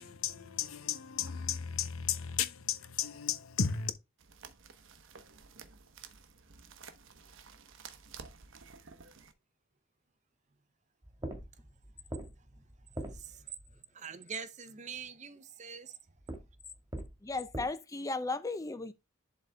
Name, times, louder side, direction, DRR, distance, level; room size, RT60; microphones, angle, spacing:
voice 1, 0.0-3.9, left 7 dB, 85° left, 0.9 m, -34 dB
sound 1, 4.2-9.3, right 5 dB, 65° right, 0.9 m, -52 dB
sound 2, 11.0-13.8 16.2-17.7, right 1 dB, 15° right, 1.6 m, -44 dB
voice 2, 13.0-16.0, right 6 dB, 35° right, 0.7 m, -45 dB
voice 3, 17.2-18.9, left 3 dB, 15° left, 0.4 m, -35 dB
11.0 x 4.0 x 3.4 m
head